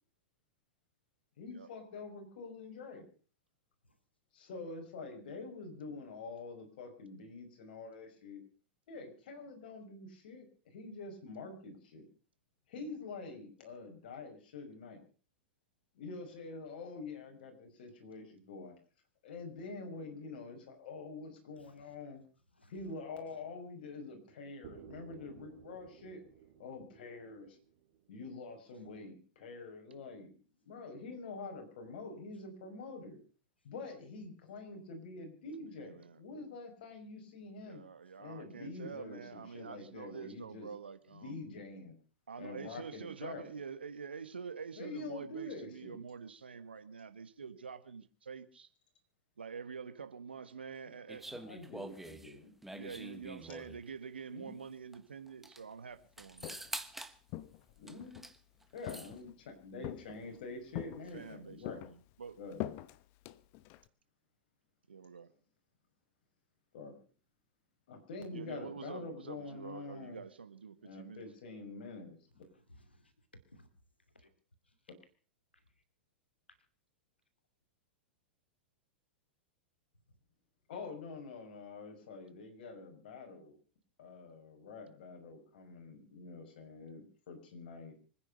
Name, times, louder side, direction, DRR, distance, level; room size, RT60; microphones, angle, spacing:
voice 1, 1.4-3.1 4.3-8.4 8.9-12.1 12.7-15.0 15.9-18.8 19.2-22.2 22.7-26.2 26.6-27.6 28.1-30.4 30.7-33.2 33.6-37.8 38.2-40.7 41.1-41.9 42.4-43.5 44.8-46.0 51.3-52.5 54.3-54.6 57.8-58.2 58.7-61.8 62.4-62.7 66.7-67.0 67.9-70.2 70.8-72.4 80.7-83.5 84.0-87.9, left 3 dB, 60° left, 5.7 m, -46 dB
sound 1, 24.6-28.5, right 9 dB, 50° right, 3.2 m, -56 dB
voice 2, 35.7-36.2 37.6-41.4 42.3-48.7 49.4-51.4 52.7-56.6 61.1-62.4 64.9-65.3 68.3-71.3, right 6 dB, 80° right, 1.6 m, -47 dB
sound 2, 51.1-53.9 54.9-55.0 55.3-55.6 56.2-57.2 57.9-58.4 58.6-59.1, right 1 dB, 5° right, 1.3 m, -46 dB
Walk footsteps, 56.2-56.8 57.3-58.3 58.9-59.4 59.8-60.4 60.8-61.4 61.7-63.9, left 16 dB, 45° left, 0.9 m, -44 dB
voice 3, 72.5-73.7 74.1-74.3 74.7-74.8 75.5-75.6, left 1 dB, 85° left, 2.6 m, -61 dB
25.5 x 10.0 x 5.4 m
figure-of-eight pair, 95°, 6 cm